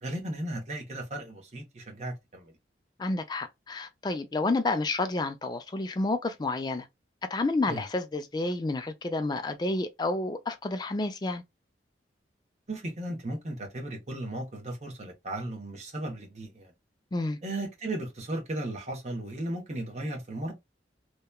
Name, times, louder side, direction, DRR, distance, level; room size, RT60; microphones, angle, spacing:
voice 1, 0.0-2.6 7.7-7.8 12.7-16.7 17.4-20.5, right 1 dB, 40° right, 0.8 m, -36 dB
voice 2, 3.0-6.9 7.3-11.4 17.1-17.4, left 2 dB, 20° left, 0.3 m, -30 dB
2.8 x 2.2 x 2.2 m
head